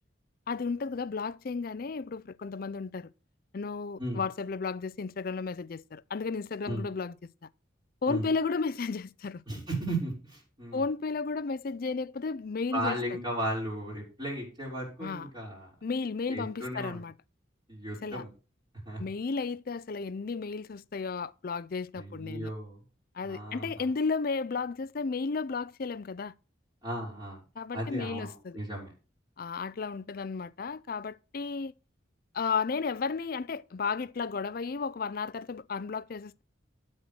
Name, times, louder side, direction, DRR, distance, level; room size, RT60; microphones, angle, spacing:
voice 1, 0.5-3.1 3.5-7.1 8.0-9.4 10.7-13.0 15.0-15.3 15.8-17.1 18.0-18.2 19.0-22.5 23.1-26.3 27.6-28.6 29.4-31.7 32.3-36.4, left 4 dB, 50° left, 0.5 m, -33 dB
voice 2, 9.5-10.9 12.7-15.7 16.3-17.0 17.7-18.3 18.9-19.0 21.9-22.8 23.2-23.9 26.8-27.4 27.7-28.9, right 1 dB, 25° right, 4.0 m, -35 dB
12.0 x 4.3 x 6.2 m
head